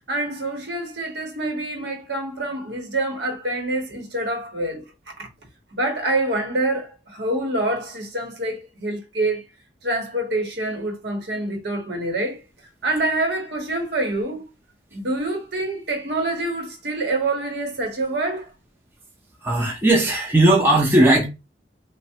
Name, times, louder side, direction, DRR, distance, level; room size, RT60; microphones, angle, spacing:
voice 1, 0.1-4.8 5.2-5.3 5.7-9.4 9.8-12.4 12.8-14.4 14.9-18.5, right 2 dB, 65° right, 0.9 m, -26 dB
voice 2, 19.4-21.3, right 1 dB, 10° right, 0.5 m, -17 dB
3.3 x 2.0 x 2.7 m
head